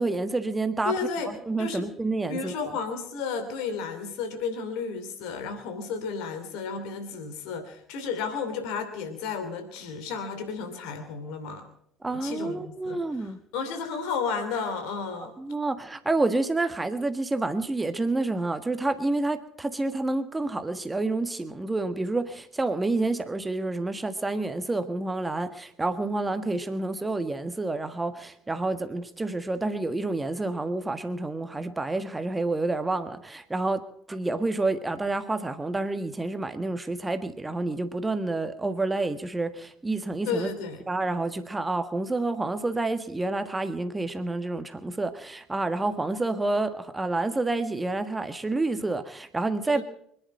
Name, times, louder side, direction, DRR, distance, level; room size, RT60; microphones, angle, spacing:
voice 1, 0.0-0.9 1.2-2.5 12.0-13.4 15.4-40.5 40.9-49.8, right 2 dB, 15° right, 9 dB, 1.5 m, -29 dB
voice 2, 0.8-1.3 1.6-1.9 2.3-11.7 12.1-15.3 40.2-40.8 49.7-49.8, left 5 dB, 65° left, 8 dB, 2.8 m, -33 dB
25.5 x 10.5 x 4.4 m, 0.72 s
figure-of-eight pair, 55°, 0 cm